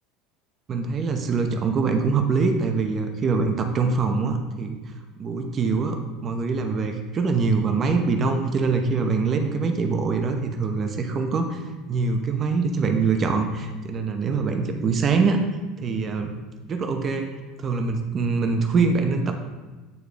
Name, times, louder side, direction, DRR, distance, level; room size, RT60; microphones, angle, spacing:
voice 1, 0.7-15.4 15.8-16.3 16.7-19.4, right 4 dB, 35° right, 5 dB, 0.7 m, -24 dB
9.5 x 3.6 x 3.4 m, 1.2 s
hypercardioid pair, 75°, 0 cm